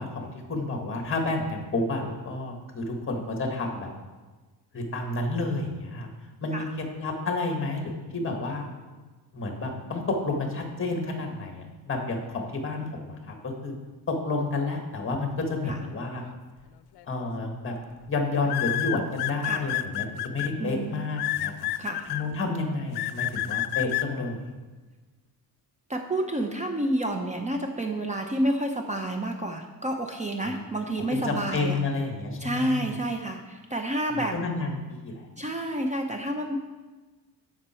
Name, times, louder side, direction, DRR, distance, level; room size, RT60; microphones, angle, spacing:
voice 1, 0.0-3.9 4.7-6.1 6.4-6.7 6.9-8.7 9.3-13.7 14.1-16.2 17.1-17.7 18.1-21.7 22.1-24.4 30.4-30.6 31.1-32.9 34.1-35.3, left 3 dB, 30° left, 3 dB, 1.8 m, -30 dB
sound 1, 17.0-17.3 18.5-20.5 21.2-22.2 23.0-24.1, left 15 dB, 75° left, 0.6 m, -28 dB
voice 2, 20.6-21.0 21.8-22.0 25.9-31.8 32.4-34.3 35.4-36.6, right 1 dB, 20° right, 3 dB, 0.7 m, -29 dB
14.5 x 6.0 x 4.5 m, 1.3 s
cardioid pair, 125°, 39 cm